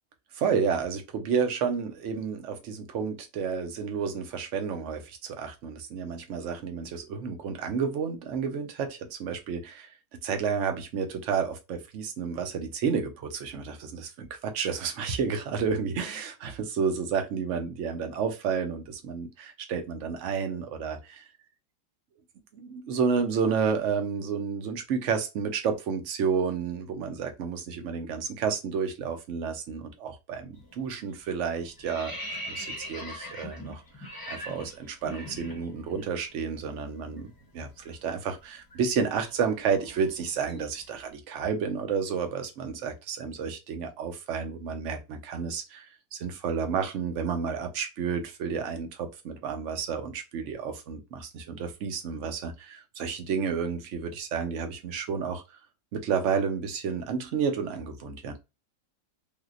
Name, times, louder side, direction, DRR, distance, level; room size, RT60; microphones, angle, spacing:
voice 1, 0.3-9.9 10.2-21.2 22.5-32.2 32.5-37.3 37.5-45.9 46.1-55.6 55.9-58.3, right 6 dB, 60° right, 0.8 m, -31 dB
sound 1, 30.5-30.8 31.1-36.1 36.4-36.5 36.9-40.9, equal, 20° left, 0.6 m, -42 dB
3.4 x 2.8 x 2.4 m
omnidirectional pair, 1.8 m